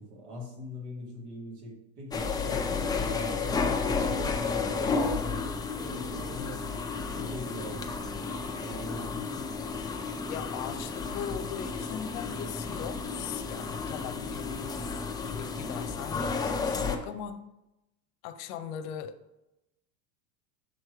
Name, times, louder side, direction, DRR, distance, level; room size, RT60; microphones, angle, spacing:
voice 1, 0.0-6.7 7.1-8.4 8.6-9.5 14.0-14.3, equal, 65° right, -1 dB, 2.2 m, -42 dB
sound 1, 2.1-17.0, left 4 dB, 10° left, 0.3 m, -32 dB
voice 2, 10.2-17.4 18.2-19.2, left 8 dB, 70° left, 10 dB, 0.7 m, -40 dB
7.2 x 3.2 x 4.7 m, 0.93 s
supercardioid pair, 120°, 42 cm